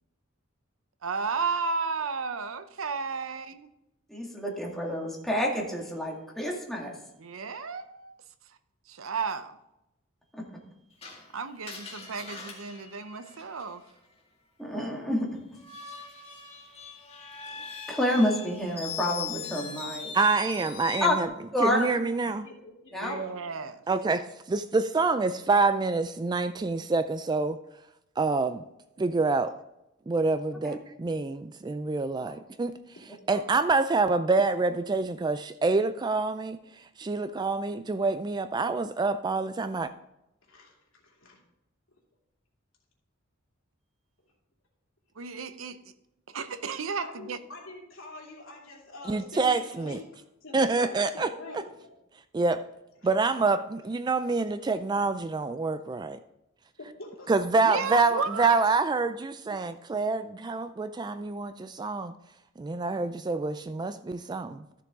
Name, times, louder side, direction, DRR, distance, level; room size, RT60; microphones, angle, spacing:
voice 1, 1.0-3.7 7.2-8.1 8.5-8.6 8.9-9.6 11.3-13.8 23.0-23.8 45.1-45.9 46.3-47.4 57.6-58.6, right 5 dB, 80° right, 12 dB, 0.7 m, -33 dB
voice 2, 4.1-6.9 10.3-10.4 14.6-15.3 17.6-20.1 21.0-21.2 21.5-21.9 22.9-23.2 30.6-30.8 32.2-32.3 33.3-33.4, left 1 dB, ahead, -2 dB, 2.0 m, -29 dB
Screech, 11.0-13.9 15.5-21.3, left 6 dB, 30° left, 2.0 m, -40 dB
voice 3, 20.1-21.3 21.6-22.5 23.9-27.6 28.2-28.6 29.0-29.6 30.1-32.8 33.3-36.6 37.0-39.9 49.1-50.0 50.5-51.3 52.3-52.6 53.0-56.2 57.3-62.1 62.6-64.6, right 3 dB, 20° right, 11 dB, 0.3 m, -26 dB
voice 4, 22.2-23.4 40.5-41.4 47.0-50.0 50.4-52.0 56.8-58.3, left 2 dB, 75° left, -2 dB, 2.9 m, -45 dB
13.5 x 6.9 x 3.6 m, 0.87 s
head